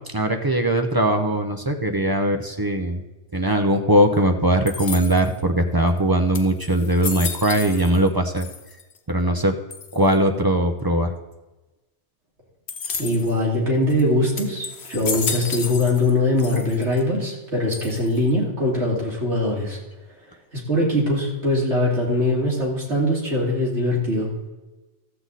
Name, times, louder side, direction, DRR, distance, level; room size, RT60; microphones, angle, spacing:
voice 1, 0.1-3.0 3.3-8.5 9.1-9.5 9.9-11.1, right 1 dB, 25° right, 4 dB, 0.6 m, -20 dB
sound 1, 4.7-5.4 6.0-6.1 6.3-8.1 8.4-9.0 9.7-10.2 12.7-13.4 13.9-14.0 14.4-16.1 16.4-17.0 17.7-18.3, left 5 dB, 65° left, 1.2 m, -32 dB
voice 2, 13.0-19.8 20.5-24.3, left 1 dB, 80° right, -3 dB, 3.0 m, -22 dB
13.5 x 7.8 x 4.1 m, 1.1 s
omnidirectional pair, 1.2 m